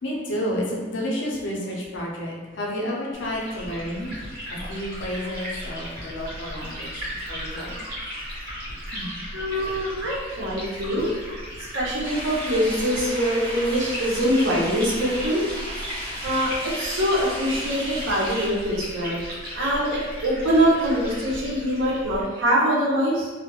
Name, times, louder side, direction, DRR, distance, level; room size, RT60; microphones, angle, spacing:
voice 1, 0.0-7.8 8.9-9.1, equal, 70° left, -3 dB, 0.5 m, -31 dB
Liquid, 3.1-22.2, equal, 50° right, 1.0 m, -36 dB
voice 2, 9.3-11.1 11.6-15.4 16.2-19.2 19.5-23.3, equal, 80° right, -5 dB, 0.7 m, -23 dB
sound 1, 12.0-18.5, equal, 5° left, 0.8 m, -35 dB
2.3 x 2.1 x 2.9 m, 1.3 s
head